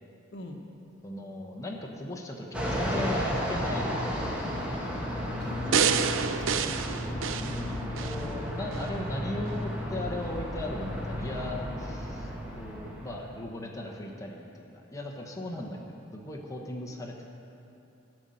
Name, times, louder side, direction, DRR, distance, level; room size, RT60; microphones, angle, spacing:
voice 1, 1.0-4.5 7.9-12.3 12.5-15.8 16.1-17.2, left 1 dB, 15° left, -1 dB, 1.1 m, -37 dB
Fixed-wing aircraft airplane, 2.5-13.4, equal, 5° right, 1.6 m, -33 dB
voice 2, 5.4-7.7 15.6-15.7, left 1 dB, 65° left, 2 dB, 1.1 m, -43 dB
sound 1, 5.7-8.2 8.7-8.8, right 7 dB, 85° right, 0.5 m, -28 dB
16.0 x 5.5 x 7.7 m, 2.9 s
head